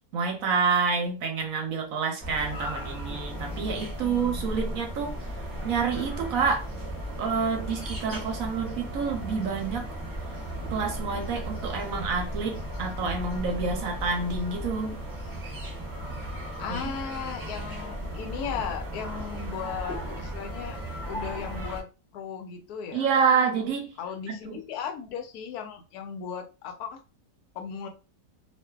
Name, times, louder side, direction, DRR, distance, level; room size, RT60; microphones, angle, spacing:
voice 1, 0.1-5.1 5.6-6.7 7.2-9.9 10.7-15.0 16.7-16.8 22.9-23.9 24.3-24.6, right 5 dB, 65° right, 1.0 m, -28 dB
sound 1, 2.2-21.8, equal, 15° right, 0.8 m, -36 dB
voice 2, 4.0-4.5 16.6-21.9 22.1-23.1 24.0-27.0 27.5-27.9, left 7 dB, 80° left, 1.1 m, -36 dB
2.6 x 2.4 x 2.2 m
omnidirectional pair, 1.7 m